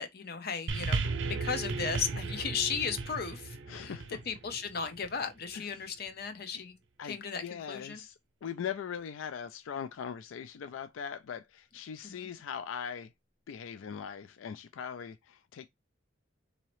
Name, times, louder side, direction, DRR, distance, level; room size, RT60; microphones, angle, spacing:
voice 1, 0.0-3.9 4.3-6.7 7.0-8.0 12.0-12.3, left 6 dB, 55° left, 0.7 m, -36 dB
sound 1, 0.7-5.2 6.1-6.2, right 3 dB, 70° right, 0.6 m, -35 dB
voice 2, 3.7-4.2 5.5-5.9 6.5-6.6 7.0-8.1 8.4-13.1 13.5-15.7, left 7 dB, 90° left, 0.4 m, -40 dB
4.0 x 2.8 x 3.1 m
head